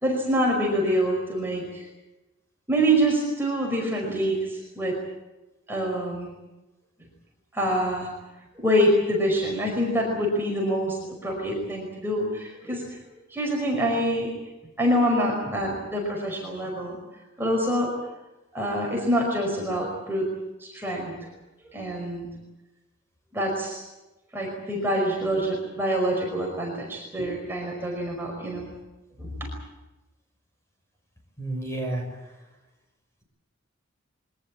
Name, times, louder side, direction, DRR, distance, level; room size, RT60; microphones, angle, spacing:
voice 1, 0.0-1.9 2.7-5.0 5.7-6.3 7.5-8.1 8.6-12.8 13.3-14.3 14.8-17.0 17.4-17.9 18.5-20.2 20.6-21.1 21.7-22.3 23.3-23.8 24.3-28.7 29.2-29.3, equal, 10° right, -1 dB, 5.3 m, -25 dB
voice 2, 31.4-32.3, right 1 dB, 15° left, 1 dB, 6.5 m, -31 dB
23.5 x 19.0 x 8.5 m, 1.0 s
head